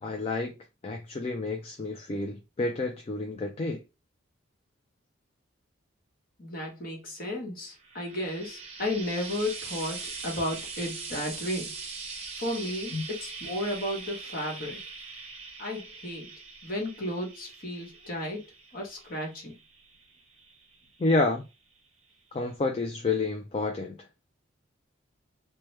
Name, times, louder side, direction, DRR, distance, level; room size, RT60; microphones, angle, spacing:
voice 1, 0.0-0.6 0.8-3.8 12.9-13.0 21.0-21.4 22.3-24.0, left 3 dB, 30° left, 0.3 m, -29 dB
voice 2, 6.4-11.8 12.4-14.8 15.6-16.3 16.6-19.5, left 1 dB, 45° left, 1.1 m, -34 dB
Frying (food), 7.7-21.1 22.1-22.2, right 4 dB, 30° right, 0.7 m, -42 dB
3.0 x 2.1 x 3.2 m
head